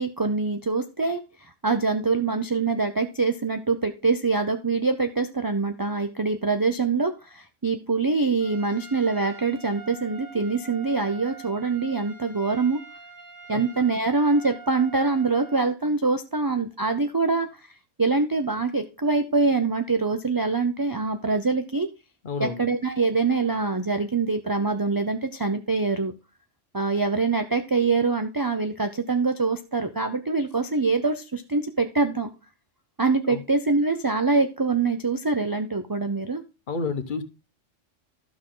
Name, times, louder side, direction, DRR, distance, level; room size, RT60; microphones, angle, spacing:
voice 1, 0.0-12.8 13.5-17.5 18.0-21.9 22.4-26.1 26.7-32.3 33.0-36.4, right 4 dB, 25° right, 0.4 m, -24 dB
Trumpet, 8.4-15.7, right 5 dB, 80° right, 2.3 m, -45 dB
voice 2, 22.2-22.7 33.3-33.4 36.7-37.2, left 4 dB, 45° left, 1.1 m, -29 dB
12.0 x 6.2 x 3.8 m
omnidirectional pair, 1.3 m